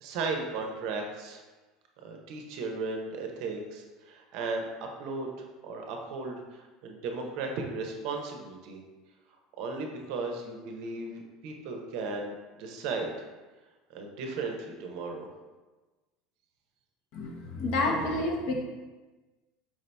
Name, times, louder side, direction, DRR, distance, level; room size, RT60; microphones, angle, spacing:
voice 1, 0.0-1.4 2.0-8.8 9.6-13.1 13.9-15.3, right 3 dB, 55° right, 2 dB, 0.7 m, -36 dB
voice 2, 17.1-18.6, left 2 dB, 55° left, 1 dB, 0.7 m, -29 dB
4.7 x 2.7 x 3.3 m, 1.2 s
cardioid pair, 160°, 0 cm